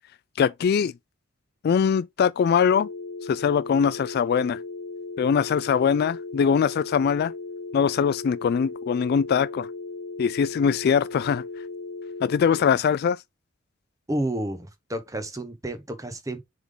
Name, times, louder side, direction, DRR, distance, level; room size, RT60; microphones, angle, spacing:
voice 1, 0.4-0.9 1.6-2.9 3.2-4.6 5.2-7.3 7.7-9.7 10.2-11.4 12.2-13.2, left 7 dB, 50° left, 0.3 m, -22 dB
sound 1, 2.7-12.7, left 3 dB, 65° left, 1.0 m, -37 dB
voice 2, 14.1-16.4, right 1 dB, 15° right, 1.2 m, -30 dB
7.1 x 3.7 x 3.7 m
head